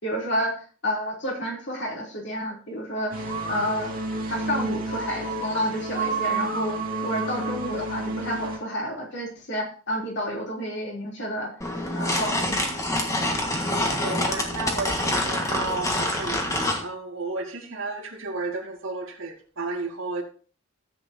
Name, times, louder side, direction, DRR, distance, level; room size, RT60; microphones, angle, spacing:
voice 1, 0.0-3.9 4.3-11.5 11.9-12.7, equal, 55° left, 3.3 m, -30 dB
sound 1, 3.1-8.6, right 2 dB, 40° right, 2.2 m, -30 dB
sound 2, 11.6-16.8, left 1 dB, 15° left, 1.5 m, -26 dB
voice 2, 14.0-20.2, right 3 dB, 65° right, 2.2 m, -33 dB
14.0 x 8.3 x 2.8 m
head